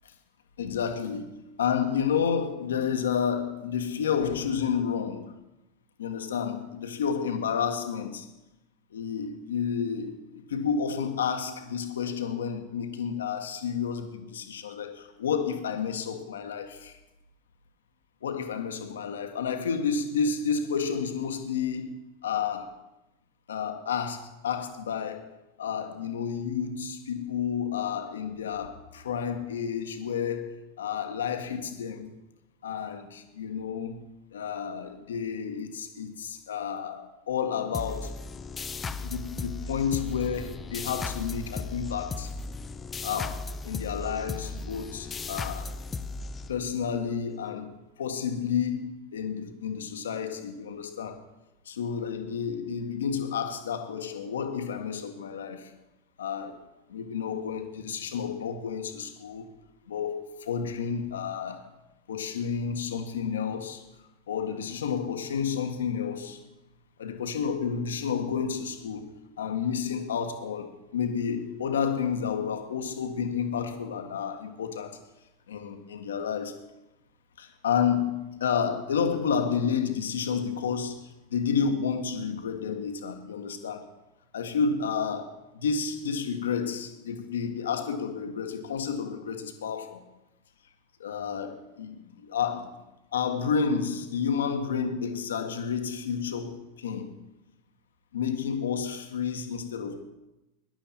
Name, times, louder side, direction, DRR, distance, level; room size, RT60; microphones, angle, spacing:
voice 1, 0.6-1.3 1.6-5.3 6.0-8.3 8.9-17.0 18.2-22.8 23.5-25.3 25.6-32.1 32.6-34.0 34.3-38.2 39.0-42.3 43.0-45.7 46.5-51.2 51.7-55.7 56.2-56.6 56.9-59.5 59.9-61.7 62.1-63.8 64.3-66.4 67.0-75.0 75.5-76.6 77.4-83.9 84.3-90.0 91.0-92.8 93.1-97.1 98.1-100.0, left 6 dB, 70° left, 1.6 m, -30 dB
sound 1, 37.7-47.0, left 4 dB, 20° left, 0.9 m, -36 dB
21.0 x 11.5 x 4.4 m
figure-of-eight pair, 85°, 0 cm